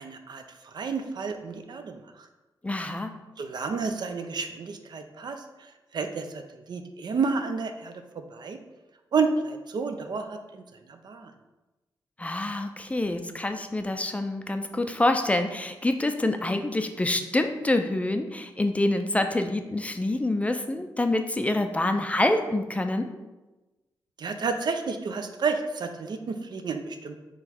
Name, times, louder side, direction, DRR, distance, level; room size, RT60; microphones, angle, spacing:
voice 1, 0.0-2.3 3.4-6.4 6.7-8.6 9.1-11.3 24.2-27.2, right 4 dB, 60° right, 7 dB, 0.4 m, -31 dB
voice 2, 2.6-3.2 12.2-23.2, left 2 dB, 15° left, 7 dB, 0.3 m, -26 dB
3.8 x 3.0 x 4.4 m, 1.1 s
wide cardioid pair, 95°, 8 cm